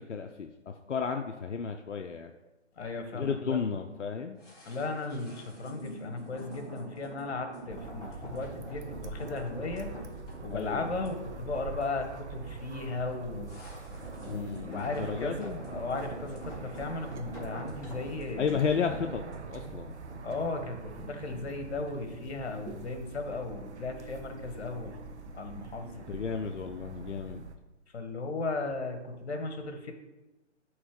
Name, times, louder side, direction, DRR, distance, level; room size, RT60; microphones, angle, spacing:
voice 1, 0.0-2.3 3.1-4.4 10.5-10.9 14.3-15.6 18.4-19.9 26.0-27.4, left 6 dB, 90° left, 5 dB, 0.6 m, -33 dB
voice 2, 2.8-3.6 4.6-9.9 10.4-13.5 14.2-18.6 20.2-25.0 25.3-26.0 27.9-29.9, left 3 dB, 60° left, 6 dB, 1.3 m, -36 dB
sound 1, 4.4-21.6 21.9-22.0, right 1 dB, 10° left, 1.4 m, -46 dB
sound 2, 7.7-27.6, right 4 dB, 70° right, 0.8 m, -44 dB
9.3 x 3.1 x 3.6 m, 1.0 s
figure-of-eight pair, 135°, 36 cm